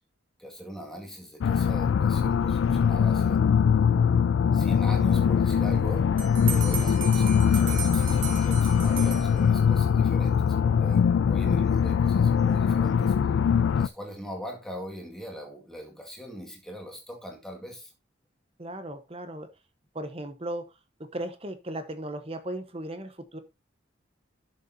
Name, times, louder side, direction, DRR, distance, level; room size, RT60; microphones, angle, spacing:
voice 1, 0.4-3.4 4.5-6.1 6.5-13.1 13.8-17.9, equal, ahead, 1.9 m, -41 dB
sound 1, 1.4-13.9, left 7 dB, 75° left, 0.3 m, -22 dB
voice 2, 5.0-5.3 6.5-6.9 18.6-19.5 19.9-23.4, right 1 dB, 30° right, 1.0 m, -37 dB
Bell, 6.2-9.8, right 9 dB, 80° right, 2.1 m, -36 dB
11.0 x 6.7 x 2.7 m
head